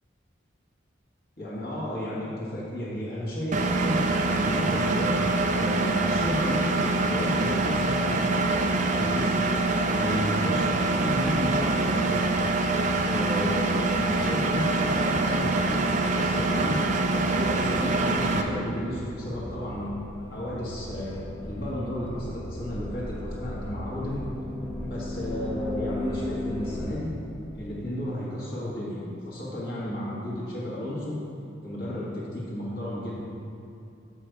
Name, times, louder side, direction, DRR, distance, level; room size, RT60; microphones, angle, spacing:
voice 1, 1.4-4.0 4.3-5.2 5.5-9.4 9.8-12.3 13.0-16.8 17.3-19.9 20.3-24.2 24.8-27.1 27.5-31.2 31.6-33.2, left 1 dB, 50° left, -7 dB, 1.5 m, -33 dB
Engine, 3.5-18.4, right 2 dB, 40° right, 0.4 m, -25 dB
sound 1, 11.1-27.0, left 1 dB, 15° left, 0.7 m, -39 dB
6.6 x 5.4 x 4.6 m, 2.7 s
head